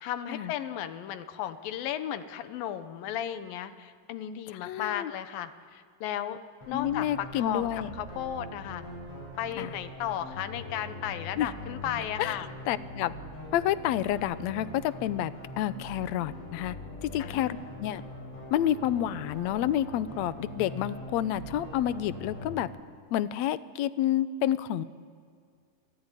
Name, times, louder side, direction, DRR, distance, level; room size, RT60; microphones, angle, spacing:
voice 1, 0.0-6.4 6.7-7.7 8.0-8.9 9.4-12.5 17.2-17.6, left 11 dB, 85° left, 10 dB, 2.9 m, -35 dB
voice 2, 4.5-5.1 6.7-8.0 9.6-9.7 11.4-11.5 12.2-13.1 13.5-16.8 17.0-18.0 18.5-22.7 23.1-24.8, left 11 dB, 70° left, 14 dB, 1.8 m, -29 dB
sound 1, 6.6-22.6, left 1 dB, 40° left, 8.4 m, -42 dB
28.0 x 18.0 x 9.9 m, 2.1 s
omnidirectional pair, 4.0 m